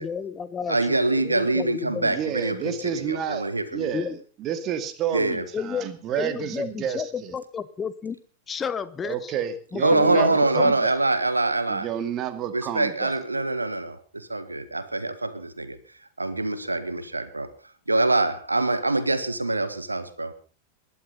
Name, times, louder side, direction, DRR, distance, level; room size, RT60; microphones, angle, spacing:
voice 1, 0.0-2.1 3.9-4.2 5.5-5.9 6.2-8.2 8.5-9.3 9.7-10.7, left 6 dB, 20° left, 15 dB, 0.9 m, -32 dB
voice 2, 0.7-3.9 5.1-5.4 9.8-11.9 12.5-17.5 17.9-20.3, right 2 dB, 80° right, 13 dB, 1.5 m, -25 dB
voice 3, 2.0-3.4 3.7-7.4 9.0-11.0 11.7-13.2, right 9 dB, 35° right, 10 dB, 2.4 m, -30 dB
20.5 x 12.0 x 5.5 m, 0.39 s
figure-of-eight pair, 90°, 0 cm